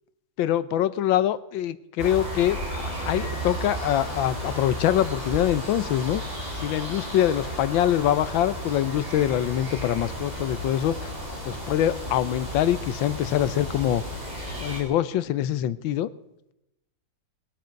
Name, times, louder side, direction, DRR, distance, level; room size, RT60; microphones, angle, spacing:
voice 1, 0.4-6.2 6.6-11.1 11.4-14.0 14.5-16.1, left 11 dB, 85° left, 16 dB, 1.5 m, -24 dB
sound 1, 2.0-14.8, equal, 20° right, 4.7 m, -33 dB
19.5 x 12.0 x 5.2 m, 0.86 s
omnidirectional pair, 2.1 m